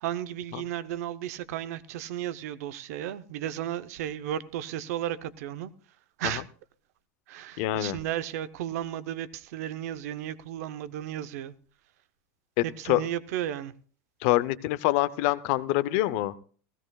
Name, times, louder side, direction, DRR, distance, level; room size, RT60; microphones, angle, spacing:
voice 1, 0.0-5.7 6.2-6.4 7.3-11.5 12.6-13.7, right 11 dB, 75° right, 0.8 m, -34 dB
voice 2, 7.6-8.0 12.6-13.0 14.2-16.4, left 16 dB, 55° left, 0.6 m, -26 dB
16.5 x 16.0 x 2.3 m
supercardioid pair, 155°, 8 cm